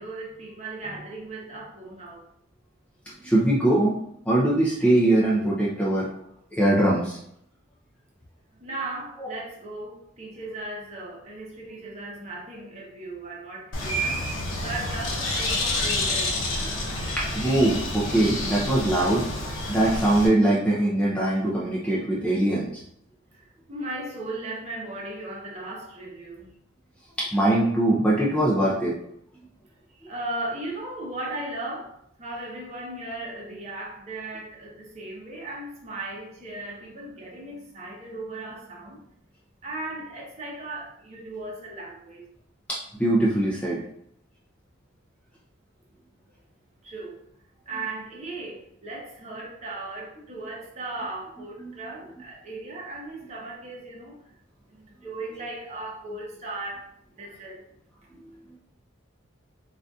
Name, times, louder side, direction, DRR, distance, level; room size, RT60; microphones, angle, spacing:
voice 1, 0.0-2.2 8.6-16.8 23.3-26.5 29.9-39.1 39.6-42.3 46.8-47.2 47.7-54.2 54.7-56.8 57.1-57.6, right 2 dB, 35° right, -3 dB, 0.8 m, -37 dB
voice 2, 3.2-4.0 4.3-6.1 6.5-7.2 9.2-9.4 17.2-19.3 19.7-22.8 27.2-28.9 42.7-43.8 51.6-51.7, right 1 dB, 5° left, -6 dB, 0.5 m, -22 dB
Bird, 13.7-20.3, left 1 dB, 75° left, 0.7 m, -29 dB
3.9 x 2.5 x 2.3 m, 0.72 s
head